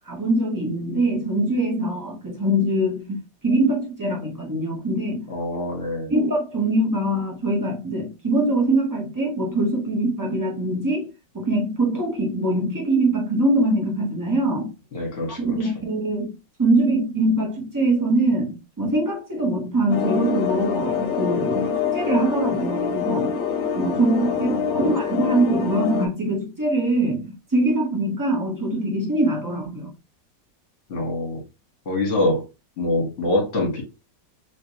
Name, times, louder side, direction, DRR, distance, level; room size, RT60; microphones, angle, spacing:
voice 1, 0.1-5.3 6.1-11.1 11.3-14.7 15.4-23.3 23.7-29.9, right 1 dB, 25° right, 0.4 m, -23 dB
voice 2, 5.3-6.1 14.9-15.7 24.2-24.9 30.9-31.4 31.8-32.4 32.8-33.8, left 2 dB, 45° left, 1.6 m, -25 dB
sound 1, 19.9-26.1, left 6 dB, 65° left, 0.7 m, -25 dB
3.2 x 3.2 x 2.8 m
omnidirectional pair, 2.0 m